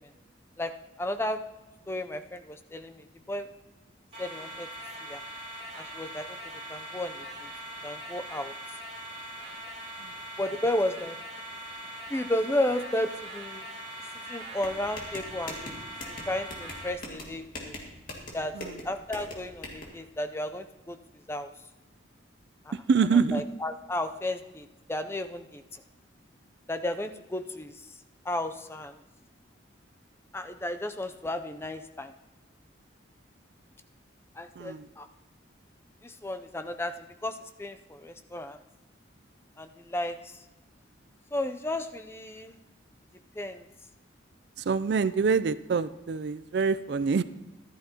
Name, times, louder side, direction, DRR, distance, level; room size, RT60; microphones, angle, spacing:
voice 1, 1.0-1.4 1.9-3.5 4.2-4.7 5.1-5.2 5.8-6.3 6.7-7.5 7.8-8.5 10.4-11.2 12.1-13.6 14.3-15.8 16.3-17.8 18.3-18.5 18.8-21.0 21.3-21.5 22.7-22.8 23.3-25.8 26.7-27.8 28.2-29.0 30.3-32.1 34.4-35.1 36.0-36.9 37.2-38.6 39.6-40.3 41.3-42.6 43.4-43.6, left 1 dB, 10° left, 8 dB, 0.4 m, -33 dB
sound 1, 4.1-16.9, right 1 dB, 35° right, 3.0 m, -41 dB
sound 2, 14.6-19.8, left 1 dB, 45° left, 2.1 m, -42 dB
voice 2, 22.9-23.4 34.6-34.9 44.6-47.2, right 5 dB, 55° right, 15 dB, 0.3 m, -26 dB
14.0 x 12.0 x 2.9 m, 1.1 s
head